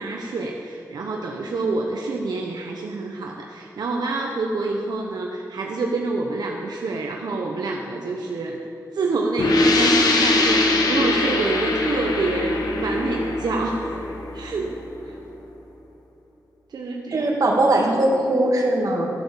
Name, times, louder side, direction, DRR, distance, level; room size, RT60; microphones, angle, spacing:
voice 1, 0.0-8.6 8.9-14.0 14.3-14.8 15.0-15.2 16.7-17.3, right 3 dB, 85° right, 1 dB, 0.9 m, -27 dB
sound 1, 9.4-14.9, left 2 dB, 70° left, 1.6 m, -22 dB
voice 2, 17.1-19.1, right 1 dB, 60° right, 0 dB, 2.3 m, -20 dB
14.0 x 7.8 x 7.2 m, 2.8 s
wide cardioid pair, 105°, 7 cm